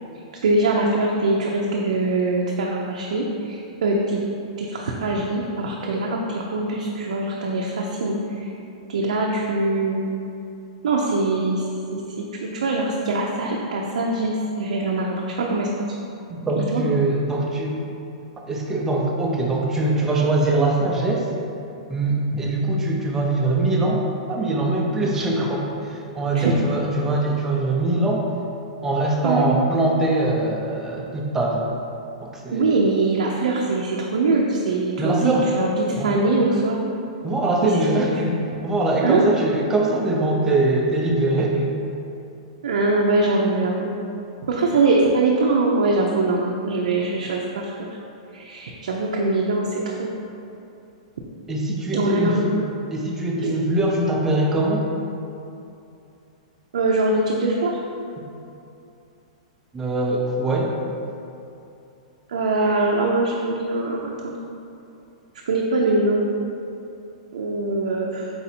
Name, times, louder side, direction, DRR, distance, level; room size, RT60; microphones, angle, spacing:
voice 1, 0.4-4.2 4.6-8.5 8.9-10.1 10.8-15.7 16.7-16.8 26.3-26.5 29.2-29.5 32.5-36.8 37.6-38.0 39.0-39.2 42.6-43.9 44.5-47.7 48.3-50.1 51.9-52.5 56.7-57.8 62.3-64.3 65.5-66.3 67.3-68.3, right 2 dB, 90° right, -2 dB, 0.4 m, -22 dB
voice 2, 16.3-17.8 18.5-21.3 21.9-28.3 28.8-31.6 32.2-32.7 35.0-35.5 36.0-36.1 37.2-38.4 38.6-41.7 51.5-52.4 52.9-54.9 59.7-60.7, right 2 dB, 10° right, -2 dB, 0.5 m, -22 dB
4.0 x 2.7 x 4.1 m, 2.7 s
hypercardioid pair, 160°, 4 cm